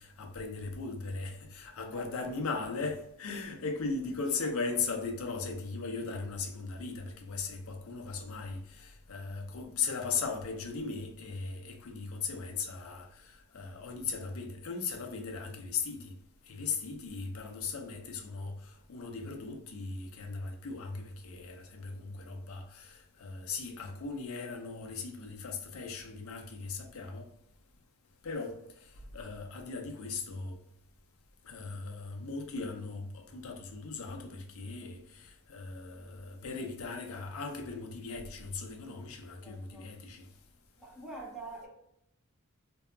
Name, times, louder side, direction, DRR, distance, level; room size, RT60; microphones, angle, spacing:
voice 1, 0.0-16.1 16.5-27.3 28.2-28.6 29.1-30.6 31.4-40.2, left 4 dB, 70° left, 0.5 m, -38 dB
voice 2, 1.9-2.7 4.0-4.7 18.8-18.9 36.5-36.7 39.4-39.9 40.8-41.7, right 2 dB, ahead, 0.6 m, -48 dB
2.7 x 2.3 x 2.3 m
head